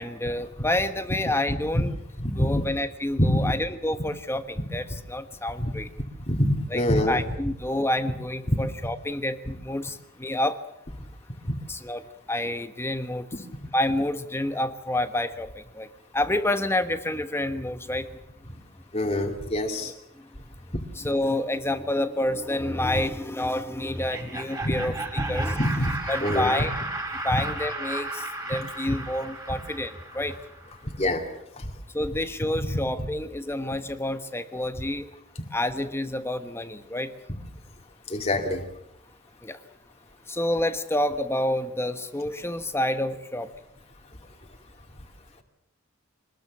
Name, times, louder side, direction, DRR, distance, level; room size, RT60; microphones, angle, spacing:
voice 1, 0.0-1.9 2.3-5.9 6.7-10.6 11.7-13.5 13.7-15.9 16.1-18.1 19.8-19.9 20.9-26.7 27.2-30.4 31.9-35.1 35.5-37.1 39.4-39.6 40.3-43.5, left 1 dB, 10° left, 9 dB, 1.2 m, -28 dB
voice 2, 2.2-2.6 3.2-3.5 5.6-5.7 6.3-7.2 18.9-19.9 24.6-24.8 25.6-25.9 26.2-26.5 31.0-31.2 31.6-31.7 38.1-38.6, left 1 dB, 30° left, 2 dB, 2.6 m, -24 dB
Laughter, 23.9-30.7, right 2 dB, 15° right, 6.9 m, -34 dB
24.5 x 20.5 x 7.4 m, 0.80 s
head